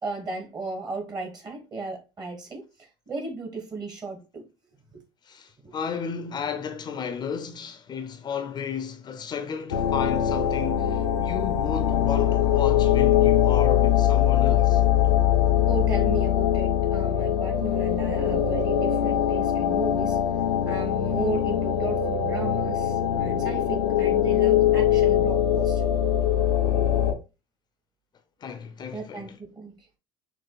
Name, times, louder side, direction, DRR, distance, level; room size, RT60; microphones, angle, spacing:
voice 1, 0.0-2.6 3.1-4.4 4.9-5.0 5.6-5.7 15.7-20.2 20.6-25.9 28.9-29.8, right 4 dB, 35° right, 1.7 m, -35 dB
voice 2, 5.3-14.8 28.4-29.4, left 7 dB, 35° left, 0.6 m, -33 dB
sound 1, 9.7-27.1, left 10 dB, 90° left, 0.6 m, -22 dB
6.0 x 2.4 x 2.3 m
hypercardioid pair, 80°, 12 cm